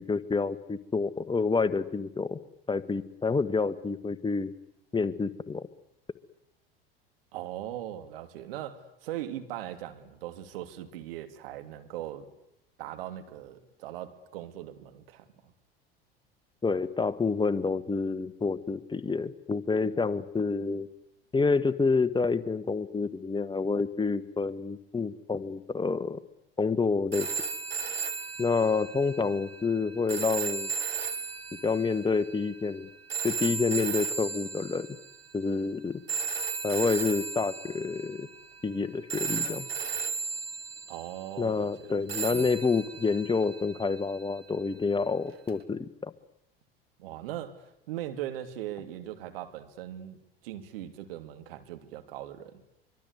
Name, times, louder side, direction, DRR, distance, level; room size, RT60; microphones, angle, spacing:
voice 1, 0.0-2.4 2.7-4.5 4.9-5.7 16.6-20.9 21.3-26.2 26.6-27.3 28.4-30.7 31.6-32.9 33.2-34.9 35.3-36.0 36.6-38.3 38.6-39.7 41.4-46.1, left 4 dB, 15° left, 1.6 m, -28 dB
voice 2, 7.3-12.3 12.8-15.5 40.9-42.0 42.3-42.5 47.0-52.6, right 12 dB, 70° right, 2.8 m, -40 dB
sound 1, 27.1-35.3 36.1-38.8 39.1-41.2 42.1-44.3 45.5-45.6, right 5 dB, 90° right, 2.0 m, -35 dB
24.5 x 24.5 x 8.3 m
hypercardioid pair, 75°, 30 cm